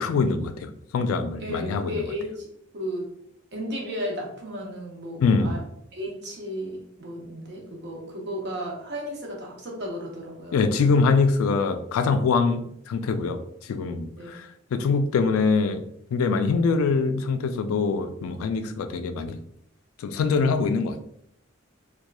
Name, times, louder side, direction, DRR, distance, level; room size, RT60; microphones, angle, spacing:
voice 1, 0.0-1.9 5.2-5.6 10.5-15.8 16.1-19.4 20.0-21.0, left 4 dB, 90° left, 9 dB, 0.3 m, -24 dB
voice 2, 1.4-2.5 2.7-3.1 3.5-5.6 5.9-10.6 14.1-14.4, equal, 55° right, -1 dB, 0.7 m, -34 dB
2.9 x 2.3 x 2.2 m, 0.72 s
head